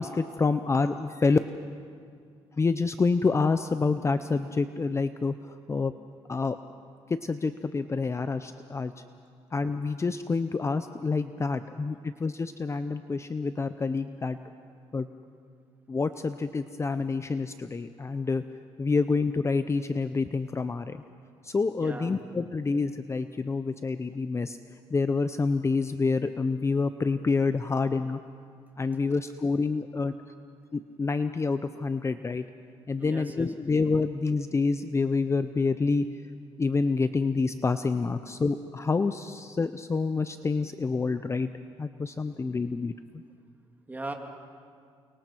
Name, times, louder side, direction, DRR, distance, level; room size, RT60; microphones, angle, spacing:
voice 1, 0.0-1.4 2.6-5.9 6.3-6.6 7.2-8.9 9.5-14.4 14.9-15.1 15.9-18.4 18.8-21.0 21.4-24.6 24.9-28.2 28.8-30.1 30.7-32.4 32.9-36.1 36.6-41.5 41.8-42.9, left 4 dB, 25° left, 10 dB, 0.7 m, -27 dB
voice 2, 21.8-22.2 33.0-33.6 42.2-42.5 43.9-44.1, right 2 dB, 15° right, 3 dB, 2.7 m, -39 dB
29.0 x 24.0 x 4.6 m, 2.2 s
cardioid pair, 95°, 11 cm